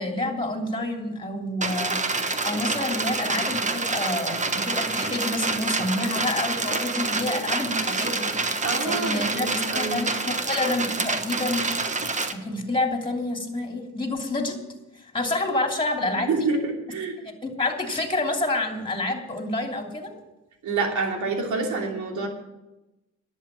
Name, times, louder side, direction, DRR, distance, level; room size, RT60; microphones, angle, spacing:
voice 1, 0.0-2.0 2.4-8.3 8.8-11.6 12.4-14.6 14.9-16.5 17.2-20.1, left 2 dB, 15° left, 3 dB, 2.9 m, -28 dB
sound 1, 1.6-12.3, right 3 dB, 25° right, 1.2 m, -27 dB
voice 2, 8.6-10.0 16.3-17.2 20.6-22.3, right 3 dB, 70° right, 2 dB, 3.1 m, -27 dB
11.0 x 8.0 x 9.3 m, 1.0 s
cardioid pair, 90°, 30 cm